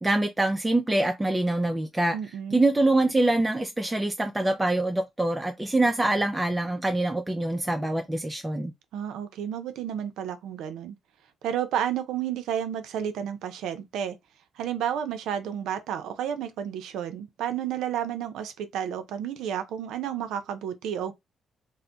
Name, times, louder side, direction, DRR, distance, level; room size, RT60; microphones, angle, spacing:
voice 1, 0.0-2.2 2.5-8.7, right 2 dB, 15° right, 0.4 m, -25 dB
voice 2, 2.1-2.6 8.9-11.0 11.4-14.2 14.6-21.1, right 9 dB, 85° right, 0.5 m, -31 dB
2.2 x 2.0 x 3.7 m
cardioid pair, 90°, 0 cm